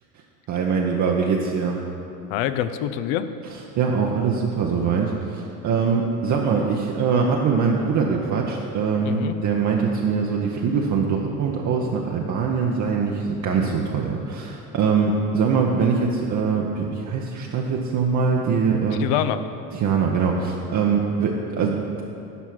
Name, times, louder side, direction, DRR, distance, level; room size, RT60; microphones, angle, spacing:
voice 1, 0.5-1.8 3.8-19.1 19.8-22.0, right 5 dB, 40° right, 0 dB, 0.8 m, -23 dB
voice 2, 2.3-3.3 9.0-9.4 13.5-13.7 18.9-19.4, left 11 dB, 55° left, 12 dB, 0.7 m, -26 dB
11.0 x 4.6 x 5.9 m, 2.7 s
hypercardioid pair, 80°, 48 cm